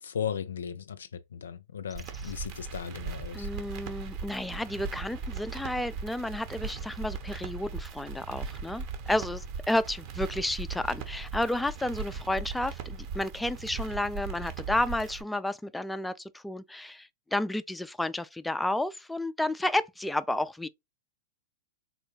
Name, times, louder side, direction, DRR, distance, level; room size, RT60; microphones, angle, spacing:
voice 1, 0.0-3.5, left 8 dB, 80° left, 0.4 m, -36 dB
sound 1, 2.0-15.2, right 5 dB, 50° right, 0.9 m, -38 dB
voice 2, 3.3-20.7, left 1 dB, 5° left, 0.3 m, -31 dB
3.9 x 2.2 x 3.2 m
hypercardioid pair, 110°, 0 cm